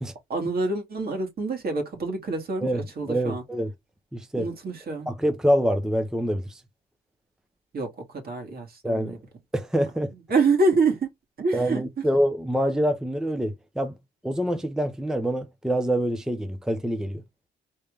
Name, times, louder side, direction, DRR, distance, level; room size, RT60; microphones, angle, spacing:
voice 1, 0.3-3.4 4.3-5.1 7.7-9.2 10.3-11.1 11.4-12.1, right 3 dB, 50° right, 2.4 m, -26 dB
voice 2, 3.1-3.7 4.1-4.5 5.1-6.6 8.8-9.2 9.5-10.1 11.5-14.0 14.2-17.2, equal, 5° right, 0.7 m, -25 dB
4.4 x 3.4 x 3.5 m
cardioid pair, 90°, 20 cm